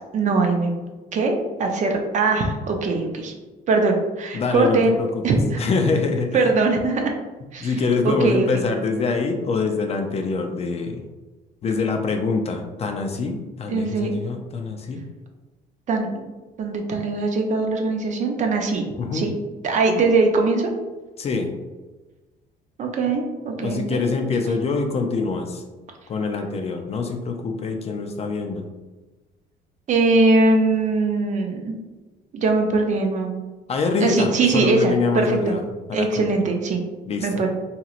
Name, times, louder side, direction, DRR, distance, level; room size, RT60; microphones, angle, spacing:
voice 1, 0.1-0.7 1.1-3.3 3.7-5.6 6.3-7.1 7.5-7.8 8.0-8.6 13.7-14.1 15.9-16.1 16.6-18.8 19.1-19.3 19.6-20.7 22.8-24.0 29.9-31.7 32.3-33.3 34.0-35.5 35.9-36.8 37.2-37.5, right 3 dB, 45° right, 3 dB, 0.5 m, -21 dB
voice 2, 4.3-6.5 7.6-11.1 11.6-15.0 19.0-19.3 21.2-21.5 23.6-25.6 26.1-28.6 33.7-35.6 35.9-36.3 37.1-37.4, left 4 dB, 40° left, 4 dB, 0.4 m, -25 dB
2.9 x 2.9 x 2.4 m, 1.2 s
cardioid pair, 110°, 17 cm